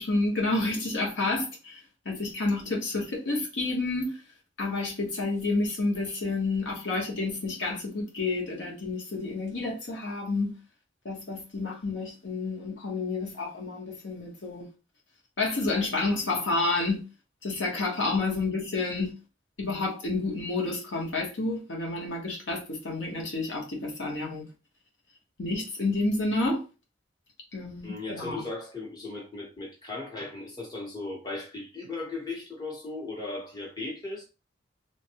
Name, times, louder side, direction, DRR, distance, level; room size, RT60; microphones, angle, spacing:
voice 1, 0.0-4.2 4.6-10.5 11.0-14.7 15.4-17.0 17.4-19.1 19.6-24.4 25.4-26.6 27.5-28.4, left 3 dB, 90° left, 1.1 m, -29 dB
voice 2, 27.8-34.2, left 3 dB, 20° left, 0.9 m, -37 dB
3.3 x 2.2 x 2.8 m
head